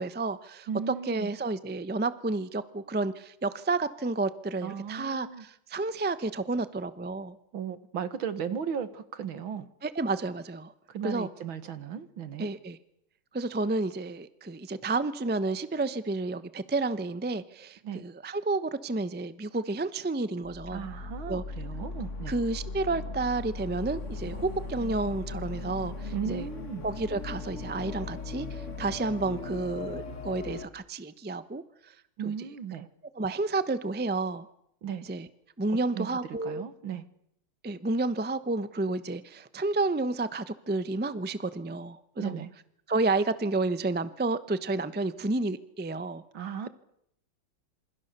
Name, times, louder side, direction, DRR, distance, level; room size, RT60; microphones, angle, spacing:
voice 1, 0.0-7.4 9.8-10.7 11.0-11.3 12.4-12.8 13.3-20.9 21.3-21.4 22.3-26.5 26.8-31.9 32.2-32.3 33.2-34.5 35.1-35.3 35.6-36.6 37.6-42.4 42.9-46.2, right 3 dB, 10° right, 13 dB, 0.5 m, -31 dB
voice 2, 0.7-1.3 4.6-5.5 7.5-9.7 10.9-12.5 17.8-18.0 20.7-22.4 26.1-26.9 32.2-32.9 34.8-35.0 35.7-36.1 36.4-37.0 42.2-42.5 46.3-46.7, right 7 dB, 80° right, 12 dB, 2.4 m, -36 dB
sound 1, 20.4-30.7, left 3 dB, 40° left, 1.8 m, -38 dB
27.5 x 27.5 x 6.8 m, 0.75 s
omnidirectional pair, 2.2 m